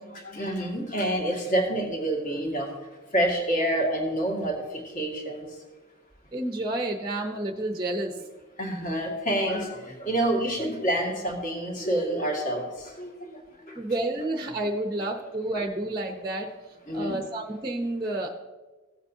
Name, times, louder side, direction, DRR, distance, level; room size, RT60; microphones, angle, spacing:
voice 1, 0.0-2.7 3.1-5.5 8.6-13.8 16.9-17.2, right 1 dB, 40° left, 0 dB, 2.0 m, -28 dB
voice 2, 6.3-8.2 13.8-16.5 16.9-18.3, right 1 dB, 20° right, 3 dB, 0.7 m, -30 dB
16.0 x 8.0 x 2.8 m, 1.2 s
head